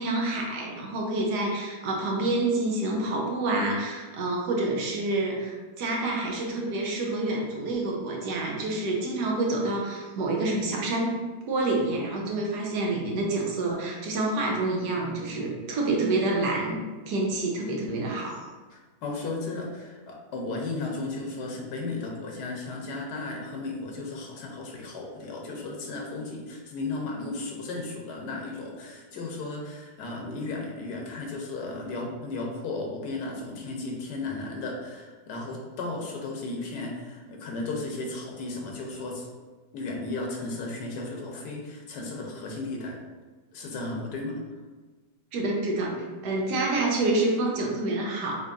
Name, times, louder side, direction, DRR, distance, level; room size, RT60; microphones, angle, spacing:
voice 1, 0.0-11.2 11.5-16.8 17.1-18.4 45.3-48.4, right 2 dB, 75° right, -1 dB, 1.4 m, -28 dB
voice 2, 18.7-39.3 39.7-43.0 43.5-44.4, left 2 dB, 80° left, 0 dB, 1.4 m, -35 dB
6.3 x 3.0 x 2.5 m, 1.3 s
omnidirectional pair, 1.8 m